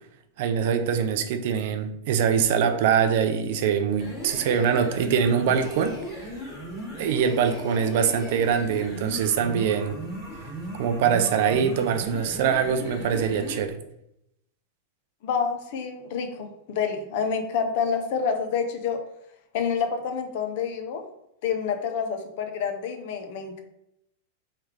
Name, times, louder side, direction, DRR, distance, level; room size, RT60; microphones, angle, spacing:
voice 1, 0.4-6.0 7.0-10.0 10.8-13.8, right 7 dB, 50° right, 8 dB, 0.4 m, -23 dB
sound 1, 3.9-13.7, equal, 15° left, 1.3 m, -37 dB
voice 2, 15.2-19.0 19.5-21.0 21.4-23.6, left 6 dB, 45° left, 6 dB, 0.5 m, -28 dB
3.2 x 3.2 x 3.5 m, 0.81 s
supercardioid pair, 175°, 0 cm